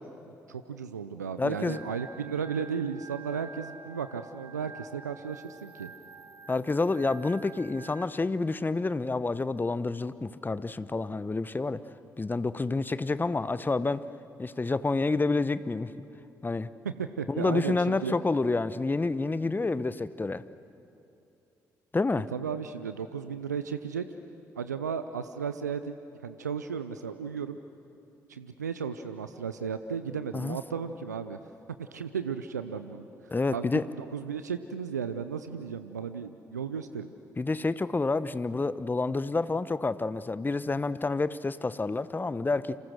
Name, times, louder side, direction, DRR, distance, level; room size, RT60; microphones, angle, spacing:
voice 1, 0.5-5.9 16.8-18.1 22.3-24.1 24.6-26.0 26.2-27.6 28.3-31.4 31.8-33.1 33.5-37.1, right 6 dB, 90° right, 10 dB, 0.6 m, -34 dB
voice 2, 1.4-1.8 6.5-11.8 12.2-14.1 14.4-15.9 16.4-16.7 17.3-20.4 21.9-22.3 30.3-30.6 33.3-33.8 37.4-42.8, left 3 dB, 20° left, 15 dB, 0.9 m, -28 dB
Organ, 1.6-8.0, right 4 dB, 30° right, 1.7 m, -48 dB
29.5 x 27.0 x 6.3 m, 2.7 s
figure-of-eight pair, 40°, 9 cm